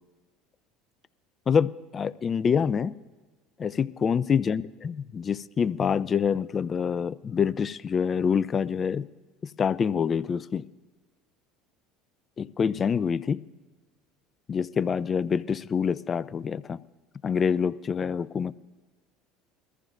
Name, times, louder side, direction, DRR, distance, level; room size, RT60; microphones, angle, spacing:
voice 1, 1.5-2.9 3.6-9.1 9.6-10.6 12.4-13.4 14.5-16.8 17.2-18.5, left 6 dB, 35° left, 0.5 m, -26 dB
22.5 x 14.5 x 2.6 m
supercardioid pair, 90°, 0 cm